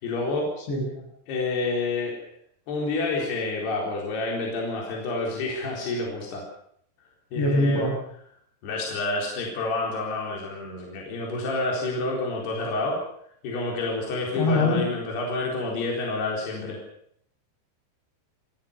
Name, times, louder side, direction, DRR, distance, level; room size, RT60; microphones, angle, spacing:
voice 1, 0.0-0.5 1.3-2.2 2.7-6.4 7.3-7.9 8.6-13.0 13.4-16.8, left 2 dB, 70° left, -1 dB, 6.1 m, -28 dB
voice 2, 0.7-1.0 7.3-7.9 14.4-14.8, left 2 dB, 85° left, 2 dB, 8.7 m, -23 dB
28.5 x 17.0 x 6.9 m, 0.68 s
omnidirectional pair, 5.0 m